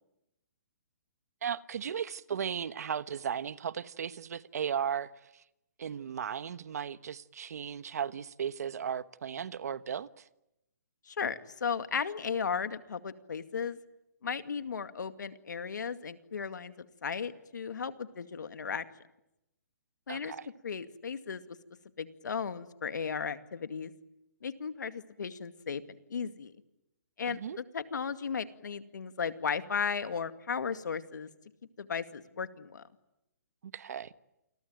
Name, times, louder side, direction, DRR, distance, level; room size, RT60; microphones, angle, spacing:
voice 1, 1.4-5.4 5.8-10.2 20.1-20.5 27.3-27.6 33.6-34.1, right 8 dB, 60° right, 1.2 m, -36 dB
voice 2, 11.1-13.8 14.2-16.7 17.0-18.8 20.1-20.3 20.6-21.6 22.0-23.9 24.4-25.8 26.1-26.5 27.2-31.3 31.8-32.8, left 6 dB, 85° left, 2.3 m, -35 dB
29.0 x 22.0 x 9.2 m
hypercardioid pair, 170°, 10 cm